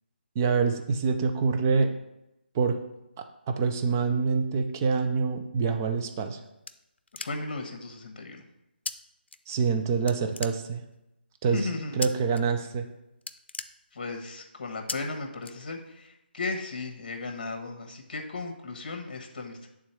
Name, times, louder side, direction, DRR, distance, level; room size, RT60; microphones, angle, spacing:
voice 1, 0.4-1.9 2.5-2.8 3.2-6.4 9.5-10.8 11.4-12.9, right 5 dB, 15° right, 6 dB, 0.4 m, -26 dB
sound 1, 6.0-7.7 8.9-9.0 9.3-9.8 10.1-11.0 12.0-12.4 12.7-12.9 13.2-14.3 14.9-15.0 15.4-16.1, left 3 dB, 85° left, 0.5 m, -38 dB
voice 2, 7.2-8.4 11.5-12.1 13.9-19.7, left 3 dB, 45° left, 3 dB, 1.2 m, -36 dB
8.8 x 3.7 x 4.4 m, 0.89 s
hypercardioid pair, 165°, 6 cm